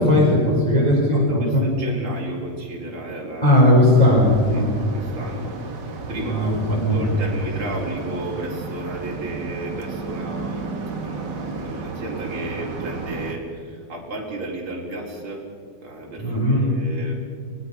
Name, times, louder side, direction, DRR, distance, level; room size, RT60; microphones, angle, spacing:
voice 1, 0.0-1.6 3.4-4.7 6.2-7.1 16.2-16.6, left 1 dB, 10° left, -5 dB, 4.6 m, -17 dB
voice 2, 1.1-3.6 4.5-10.7 11.0-15.5 15.8-17.2, right 2 dB, 30° right, -2 dB, 4.9 m, -33 dB
sound 1, 3.9-13.3, right 3 dB, 80° right, 0.9 m, -33 dB
24.5 x 20.0 x 6.0 m, 2.2 s
omnidirectional pair, 4.8 m